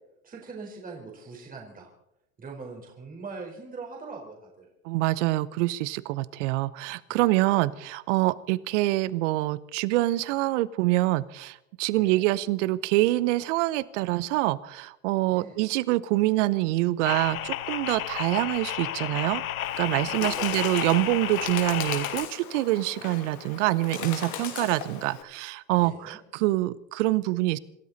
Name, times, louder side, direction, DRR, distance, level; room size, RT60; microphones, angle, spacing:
voice 1, 0.2-1.9 2.4-4.7 7.1-7.5 11.9-12.3 15.3-15.6 20.2-20.5 25.8-26.2, right 4 dB, 20° right, -1 dB, 4.4 m, -42 dB
voice 2, 4.8-19.4 19.8-27.6, right 18 dB, 60° right, 19 dB, 0.9 m, -26 dB
sound 1, 17.0-22.3, left 12 dB, 90° left, 0.8 m, -32 dB
Bird, 19.6-25.2, left 9 dB, 45° left, 2.9 m, -38 dB
26.5 x 13.0 x 4.1 m, 0.84 s
hypercardioid pair, 105°, 41 cm